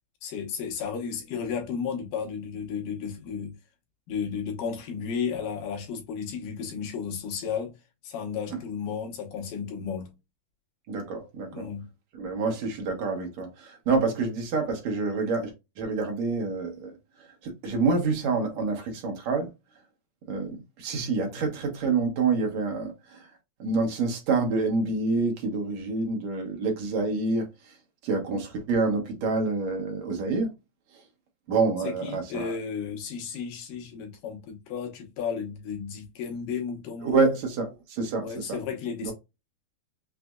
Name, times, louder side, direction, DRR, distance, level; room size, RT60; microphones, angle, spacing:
voice 1, 0.2-3.6 4.1-7.8 8.0-10.1 11.5-11.9 31.8-37.3 38.2-39.1, left 6 dB, 70° left, 2.7 m, -33 dB
voice 2, 10.9-11.7 12.2-16.9 17.4-19.5 20.3-23.2 23.6-27.5 28.0-30.5 31.5-32.6 37.0-38.6 39.0-39.1, right 4 dB, 65° right, 2.0 m, -27 dB
6.1 x 2.5 x 2.3 m
omnidirectional pair, 4.0 m